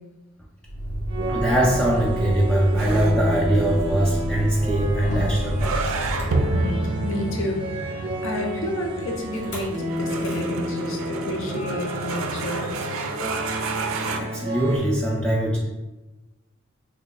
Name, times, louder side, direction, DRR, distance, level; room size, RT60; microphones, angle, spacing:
Motor vehicle (road), 0.6-7.1 9.3-9.8 10.1-10.5, right 1 dB, 55° left, 1.0 m, -30 dB
sound 1, 1.1-14.8, equal, 25° right, 0.7 m, -31 dB
voice 1, 1.3-5.8 14.2-15.6, right 1 dB, 5° left, -4 dB, 0.3 m, -22 dB
sound 2, 2.8-14.2, right 3 dB, 80° right, 0.4 m, -31 dB
voice 2, 6.5-12.7, left 1 dB, 70° left, 1 dB, 0.6 m, -30 dB
2.9 x 2.3 x 3.9 m, 1.1 s
head